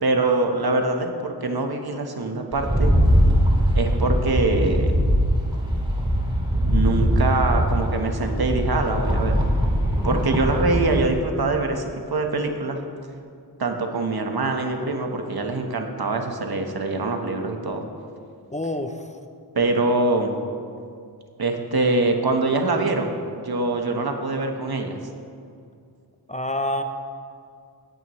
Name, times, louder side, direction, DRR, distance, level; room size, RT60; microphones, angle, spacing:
voice 1, 0.0-2.9 3.7-4.9 6.6-9.3 10.0-12.8 13.6-17.8 19.5-20.3 21.4-25.0, right 2 dB, 60° right, 4 dB, 1.3 m, -24 dB
Rattle, 2.5-11.0, equal, 10° right, 2.2 m, -21 dB
voice 2, 18.5-19.1 26.3-26.8, left 1 dB, 20° left, 6 dB, 0.6 m, -27 dB
18.0 x 9.3 x 3.1 m, 2.4 s
wide cardioid pair, 65°, 41 cm